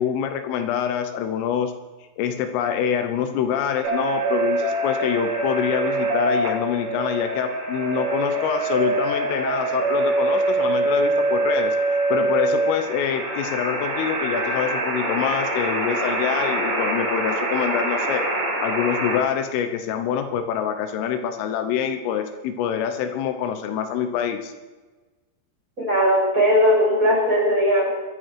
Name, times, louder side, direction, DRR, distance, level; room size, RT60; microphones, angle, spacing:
voice 1, 0.0-1.7 2.2-18.2 18.6-24.5, left 8 dB, 80° left, 7 dB, 3.4 m, -25 dB
sound 1, 3.8-19.2, right 2 dB, 80° right, 7.6 m, -24 dB
voice 2, 25.8-27.9, equal, 15° right, -5 dB, 5.6 m, -18 dB
22.5 x 9.3 x 4.6 m, 1.2 s
omnidirectional pair, 5.8 m